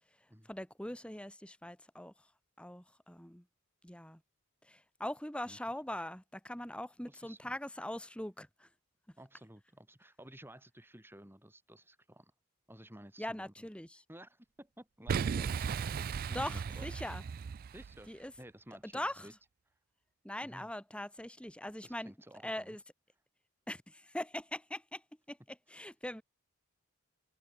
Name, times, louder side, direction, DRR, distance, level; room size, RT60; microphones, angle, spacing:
voice 1, 0.5-2.1 2.6-3.4 3.8-4.2 4.6-8.7 13.2-14.0 16.3-17.3 18.1-18.3 18.9-19.3 20.2-22.1 22.4-22.8 23.7-25.0 25.3-26.2, left 1 dB, 5° left, 2.6 m, -41 dB
voice 2, 7.1-7.5 9.2-12.3 12.7-13.7 14.1-15.7 16.3-16.9 17.7-19.3 20.4-20.7 21.8-22.8, right 1 dB, 10° right, 7.1 m, -54 dB
Boom, 15.1-18.1, right 6 dB, 45° right, 0.3 m, -36 dB
head